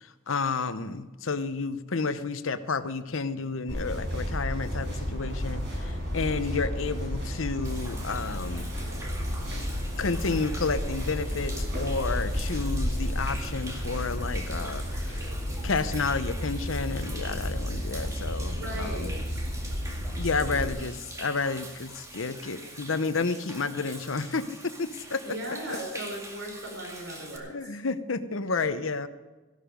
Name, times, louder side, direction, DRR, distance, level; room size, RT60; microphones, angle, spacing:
voice 1, 0.0-8.7 10.0-15.3 15.6-19.1 20.2-25.2 25.5-25.6 27.5-29.1, left 4 dB, 90° left, 12 dB, 0.9 m, -31 dB
sound 1, 3.7-20.7, equal, 60° right, 5.7 m, -32 dB
Human voice / Rain / Stream, 7.6-27.4, right 1 dB, 15° right, 2.1 m, -44 dB
voice 2, 18.5-19.6 20.4-20.7 25.2-27.5, right 1 dB, 85° right, 0 dB, 5.7 m, -38 dB
15.5 x 12.0 x 5.2 m, 1.2 s
head